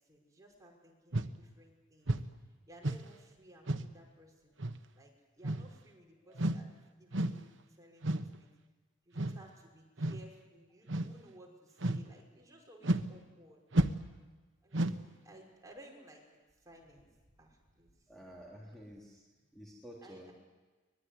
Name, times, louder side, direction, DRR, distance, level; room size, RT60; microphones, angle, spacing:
voice 1, 0.1-2.2 2.7-4.6 5.0-8.5 9.1-13.6 14.6-16.3 16.6-17.1 17.4-17.9 20.0-20.3, right 1 dB, 20° right, 0 dB, 5.7 m, -58 dB
sound 1, 1.1-1.4 2.1-2.3 2.8-3.1 3.7-3.9 4.6-4.8 5.4-5.8 6.4-6.7 7.1-7.4 8.0-8.4 9.2-9.4 10.0-10.3 10.9-11.2 11.8-12.1 12.8-13.1 13.7-14.2 14.7-15.1, right 1 dB, 70° right, 1.2 m, -32 dB
voice 2, 6.2-6.8 18.1-19.2 19.5-20.3, equal, ahead, -4 dB, 3.5 m, -52 dB
24.0 x 21.5 x 9.7 m, 1.3 s
head